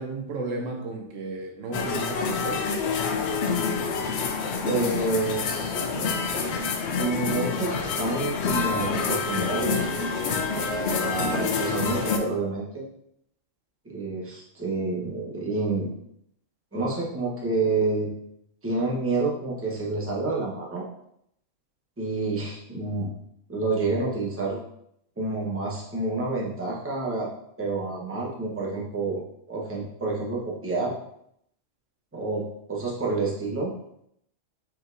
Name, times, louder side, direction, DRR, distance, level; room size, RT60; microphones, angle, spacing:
voice 1, 0.0-2.7, right 2 dB, 75° right, 2 dB, 1.1 m, -33 dB
sound 1, 1.7-12.2, left 5 dB, 65° left, 0.8 m, -27 dB
voice 2, 4.6-5.8 6.6-6.7 7.0-9.9 11.0-12.8 13.8-15.9 16.7-18.1 18.6-20.8 22.0-23.1 23.5-24.6 25.2-27.3 27.6-29.2 29.5-30.9 32.1-33.7, right 3 dB, 10° right, -4 dB, 0.8 m, -28 dB
4.6 x 4.1 x 2.6 m, 0.74 s
omnidirectional pair, 1.3 m